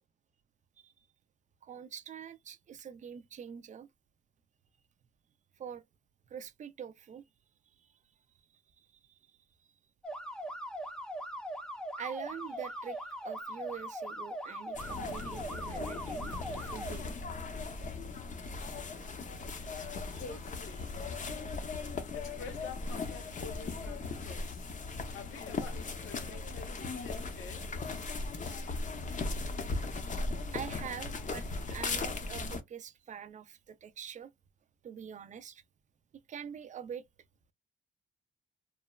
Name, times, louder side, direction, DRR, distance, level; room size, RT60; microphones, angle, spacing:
voice 1, 1.6-3.9 5.6-5.8 6.3-7.2 8.8-8.9 12.0-17.1 20.1-20.3 30.5-34.3 34.8-35.6 36.3-37.0, right 8 dB, 40° right, 0.4 m, -44 dB
sound 1, 10.0-16.9, equal, 5° left, 0.6 m, -40 dB
sound 2, 14.7-32.6, left 3 dB, 40° left, 0.7 m, -38 dB
voice 2, 20.2-20.9 22.1-24.7 25.1-27.7, left 6 dB, 85° left, 0.9 m, -48 dB
3.0 x 2.0 x 2.3 m
cardioid pair, 90°, 20 cm